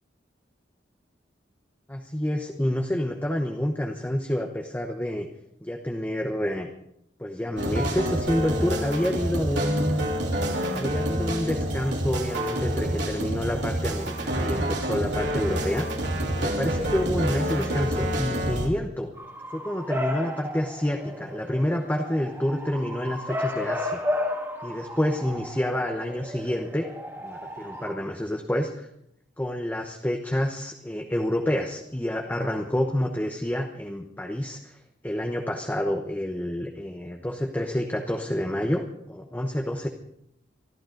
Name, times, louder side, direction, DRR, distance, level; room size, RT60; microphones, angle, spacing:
voice 1, 1.9-5.3 5.6-6.7 7.2-10.1 10.7-15.9 16.3-19.1 19.5-24.0 24.6-26.9 27.2-28.9 29.4-34.8 35.0-39.9, left 1 dB, 10° left, 3 dB, 1.0 m, -28 dB
sound 1, 7.6-18.7, equal, 80° right, 3.2 m, -28 dB
Bark / Motor vehicle (road) / Siren, 19.2-27.9, left 1 dB, 15° right, 2.1 m, -33 dB
25.5 x 12.0 x 3.9 m, 0.77 s
head